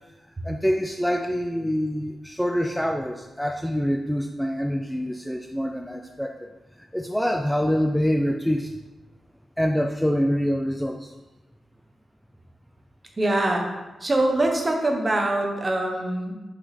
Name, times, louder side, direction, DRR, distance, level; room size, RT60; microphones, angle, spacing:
voice 1, 0.4-6.5 6.8-8.7 9.6-11.1, equal, 5° left, 3 dB, 0.4 m, -25 dB
voice 2, 13.2-13.7 14.0-16.3, right 1 dB, 30° right, 2 dB, 1.1 m, -23 dB
5.7 x 5.1 x 4.2 m, 1.1 s
wide cardioid pair, 105°, 0 cm